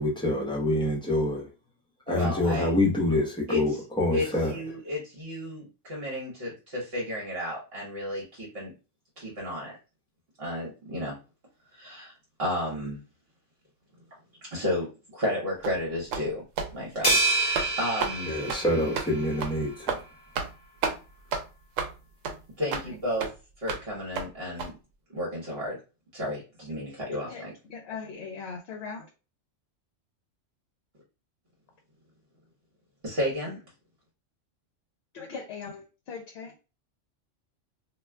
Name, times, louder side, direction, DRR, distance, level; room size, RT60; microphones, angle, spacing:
voice 1, 0.0-1.5 2.1-4.5 18.3-20.0, left 1 dB, 5° left, 0.6 m, -26 dB
voice 2, 2.1-2.7 3.5-3.6 4.1-8.7 9.2-9.7 10.4-11.1 11.7-12.1 12.4-13.0 14.5-16.4 16.7-18.3 22.6-23.3 23.6-24.7 25.1-25.8 26.1-27.5 33.0-33.6, left 1 dB, 55° right, 1.1 m, -32 dB
sound 1, 15.6-15.8 16.1-16.3 16.6-16.7 17.0-17.2 17.5-17.7 18.0-18.2 18.5-18.6 18.9-19.1 19.4-19.5 19.9-20.0 20.3-20.5 20.8-21.0 21.3-21.4 21.8-21.9 22.2-22.4 22.7-22.9 23.2-23.3 23.7-23.8 24.2-24.3 24.6-24.7, right 5 dB, 85° right, 1.0 m, -30 dB
sound 2, 17.0-19.5, right 2 dB, 35° left, 1.2 m, -27 dB
voice 3, 27.7-29.1 35.1-36.5, left 5 dB, 65° left, 0.8 m, -39 dB
2.4 x 2.2 x 3.3 m
omnidirectional pair, 1.3 m